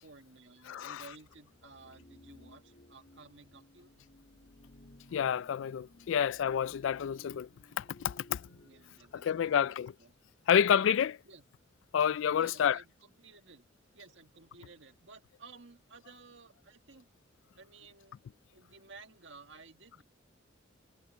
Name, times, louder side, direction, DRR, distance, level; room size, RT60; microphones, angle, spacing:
voice 1, 0.0-3.9 8.6-10.1 11.2-11.5 12.3-13.7 13.9-17.1 17.6-18.2 18.5-20.0, right 4 dB, 70° right, 1.8 m, -55 dB
voice 2, 0.7-1.0 5.1-7.5 7.8-8.4 9.1-9.9 10.5-11.2 11.9-12.8, left 8 dB, 75° left, 0.3 m, -29 dB
sound 1, 1.1-9.3, left 1 dB, 50° left, 3.1 m, -58 dB
head